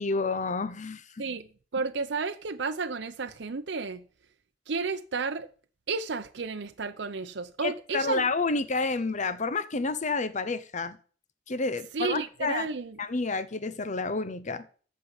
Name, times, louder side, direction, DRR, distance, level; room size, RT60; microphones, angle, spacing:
voice 1, 0.0-1.2 7.6-11.0 11.5-12.7 13.0-14.6, left 3 dB, 40° left, 0.8 m, -29 dB
voice 2, 1.7-4.0 4.7-5.5 5.9-8.2 11.9-13.0, right 4 dB, 70° right, 0.7 m, -32 dB
14.0 x 5.3 x 8.1 m
head